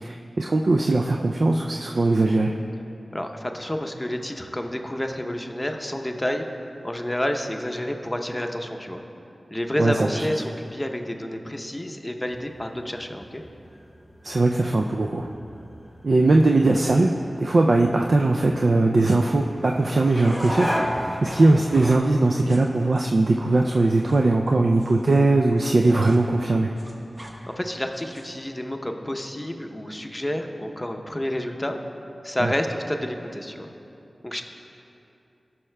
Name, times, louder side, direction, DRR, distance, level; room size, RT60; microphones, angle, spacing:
voice 1, 0.0-2.5 9.8-10.2 14.2-15.3 16.0-17.1 17.4-26.7 32.4-32.5, right 2 dB, 70° right, 1 dB, 0.3 m, -20 dB
voice 2, 3.1-6.5 6.8-9.0 9.5-13.4 27.5-31.8 32.2-33.7 34.2-34.4, left 1 dB, 20° left, 4 dB, 0.6 m, -29 dB
sound 1, 12.3-22.0, equal, ahead, 1.0 m, -35 dB
sound 2, 20.2-20.5 21.2-21.5 22.2-25.2 25.5-26.2 26.5-27.3 27.9-28.4, right 1 dB, 35° right, 1.2 m, -48 dB
16.5 x 5.6 x 2.2 m, 2.8 s
cardioid pair, 45°, 0 cm